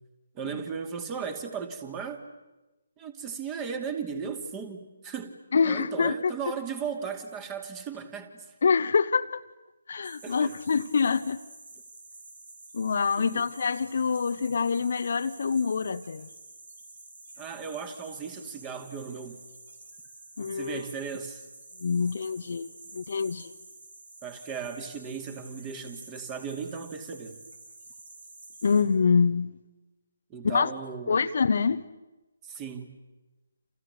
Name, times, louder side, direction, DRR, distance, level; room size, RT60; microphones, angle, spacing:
voice 1, 0.3-2.2 3.0-8.5 10.2-10.6 13.2-13.4 17.4-19.5 20.4-21.4 24.2-27.4 30.3-31.2 32.4-32.9, right 6 dB, 20° right, 2.5 m, -36 dB
voice 2, 5.5-6.3 8.6-9.4 9.9-11.4 12.7-16.3 20.4-20.8 21.8-23.5 28.6-29.6 30.4-30.7 31.1-31.8, left 5 dB, 55° left, 0.9 m, -25 dB
sound 1, 10.0-28.8, right 2 dB, 70° right, 8.0 m, -49 dB
29.5 x 28.5 x 6.7 m
figure-of-eight pair, 145°, 0 cm